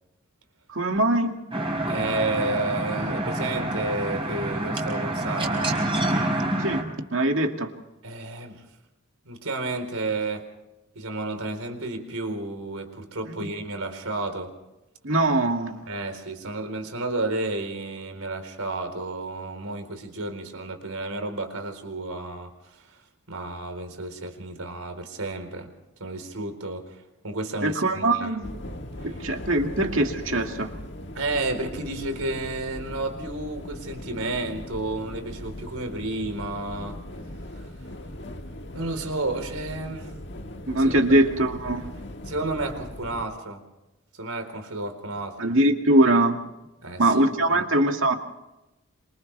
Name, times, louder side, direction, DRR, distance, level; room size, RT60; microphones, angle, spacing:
voice 1, 0.7-1.4 6.6-6.9 7.1-7.7 13.3-13.5 15.0-15.8 27.6-28.5 29.0-30.7 40.7-41.9 45.4-46.4 47.0-48.1, right 1 dB, 65° right, 4 dB, 2.3 m, -22 dB
sound 1, 1.5-6.8, right 1 dB, 25° right, 4.8 m, -27 dB
voice 2, 1.9-5.8 8.0-8.7 9.3-10.5 10.9-14.5 15.9-23.0 23.3-25.7 26.0-28.4 29.0-29.2 31.1-37.0 37.5-37.7 38.7-40.1 40.8-41.1 42.3-43.6 44.2-45.4 46.8-47.2 47.5-47.6, right 2 dB, 90° right, 6 dB, 4.2 m, -31 dB
sound 2, 28.4-43.2, left 1 dB, 55° left, 1.7 m, -39 dB
27.5 x 27.5 x 3.4 m, 0.95 s
head